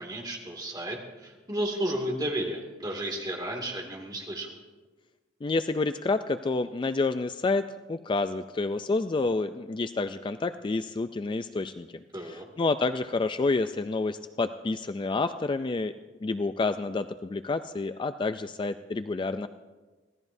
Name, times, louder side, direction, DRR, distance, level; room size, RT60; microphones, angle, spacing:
voice 1, 0.0-4.5 12.1-12.5, right 1 dB, 20° right, 1 dB, 2.3 m, -33 dB
voice 2, 5.4-7.6 7.9-15.9 16.2-19.5, left 3 dB, 25° left, 10 dB, 0.3 m, -29 dB
25.0 x 16.5 x 2.7 m, 1.3 s
head